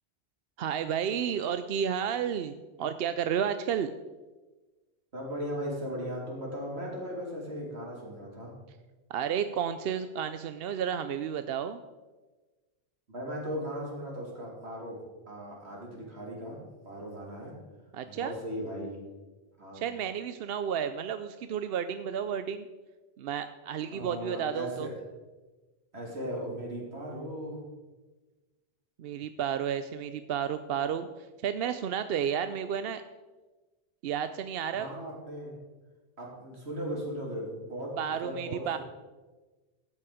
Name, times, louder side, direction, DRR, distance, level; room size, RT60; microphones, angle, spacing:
voice 1, 0.6-3.9 9.1-11.8 17.9-18.3 19.7-22.7 23.2-24.9 29.0-33.0 34.0-34.9 38.0-38.8, right 8 dB, 70° right, 10 dB, 0.8 m, -32 dB
voice 2, 5.1-8.5 13.1-15.0 15.3-16.6 16.8-17.5 18.0-19.0 19.6-19.8 23.9-24.9 25.9-27.6 34.7-35.6 36.2-38.8, equal, 85° right, -2 dB, 3.4 m, -37 dB
13.0 x 8.6 x 4.9 m, 1.2 s
omnidirectional pair, 1.1 m